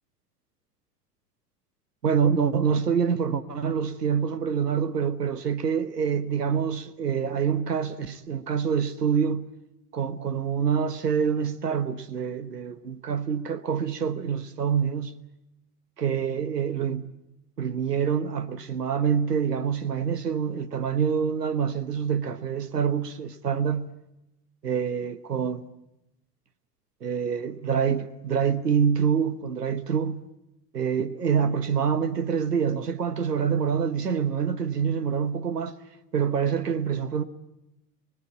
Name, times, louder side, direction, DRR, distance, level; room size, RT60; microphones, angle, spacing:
voice 1, 2.0-9.5 9.9-15.1 16.0-17.1 17.6-23.9 24.6-25.6 27.0-30.2 30.7-35.7 36.1-37.2, right 7 dB, 85° right, 1.2 m, -26 dB
29.0 x 21.0 x 7.4 m
figure-of-eight pair, 80°, 46 cm